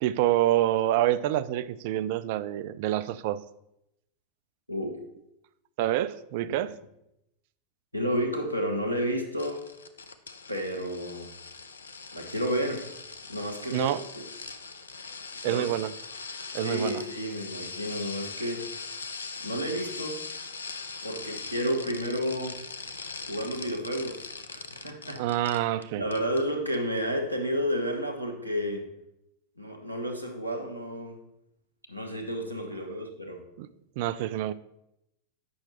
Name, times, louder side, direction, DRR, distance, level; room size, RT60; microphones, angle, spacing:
voice 1, 0.0-3.4 5.8-6.8 13.7-14.0 15.4-15.9 16.5-17.0 25.2-26.0 33.6-33.7 34.0-34.5, right 13 dB, 50° right, 14 dB, 0.3 m, -27 dB
voice 2, 7.9-9.6 10.5-11.3 12.1-12.9 13.3-14.2 15.4-15.7 16.6-18.7 19.4-20.2 21.0-22.6 23.3-25.2 26.0-28.9 29.6-31.2 31.9-33.4, equal, 90° left, 3 dB, 1.0 m, -31 dB
sound 1, 9.4-25.8 26.1-26.4 26.7-26.8, left 4 dB, 70° left, 0.5 m, -41 dB
8.5 x 5.8 x 3.0 m, 0.83 s
figure-of-eight pair, 90°, 0 cm